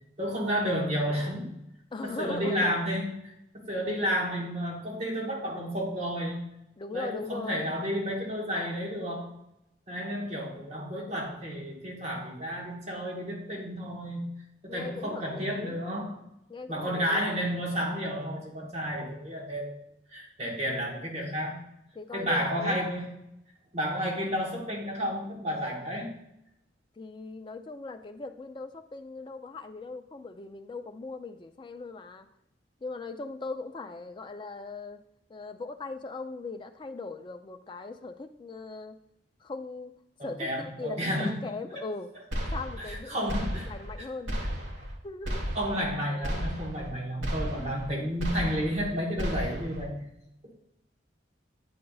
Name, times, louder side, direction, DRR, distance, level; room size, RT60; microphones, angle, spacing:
voice 1, 0.2-1.5 2.0-6.4 6.9-9.3 9.9-14.3 14.6-16.2 16.7-19.8 20.1-21.6 22.1-23.1 23.7-26.1 40.2-41.3 41.7-41.8 42.8-43.7 45.5-50.1 50.4-50.5, equal, 35° right, -2 dB, 1.2 m, -31 dB
voice 2, 1.9-2.7 6.8-7.7 14.7-15.8 16.5-17.2 21.9-22.8 27.0-32.3 32.8-35.0 35.3-39.0 39.4-39.9 40.2-42.1 42.5-44.4 44.7-45.5 47.5-47.9, left 3 dB, 25° left, 7 dB, 0.3 m, -39 dB
sound 1, 42.3-43.0 43.3-44.0 44.3-45.0 45.2-45.9 46.2-46.9 47.2-47.9 48.2-48.9 49.2-49.9, equal, 85° right, 1.3 m, -33 dB
8.6 x 5.1 x 2.3 m, 0.83 s
head